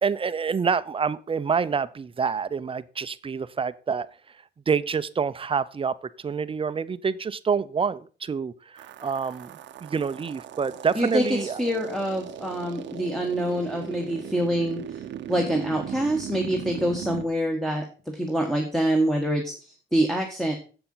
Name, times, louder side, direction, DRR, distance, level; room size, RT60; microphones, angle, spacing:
voice 1, 0.0-4.1 4.7-9.5 9.8-11.6, right 6 dB, 30° right, 15 dB, 0.6 m, -27 dB
sound 1, 8.8-17.3, right 11 dB, 85° right, 0.8 m, -38 dB
voice 2, 10.9-20.6, equal, ahead, 0 dB, 1.5 m, -26 dB
7.8 x 6.9 x 5.6 m, 0.37 s
cardioid pair, 110°, 19 cm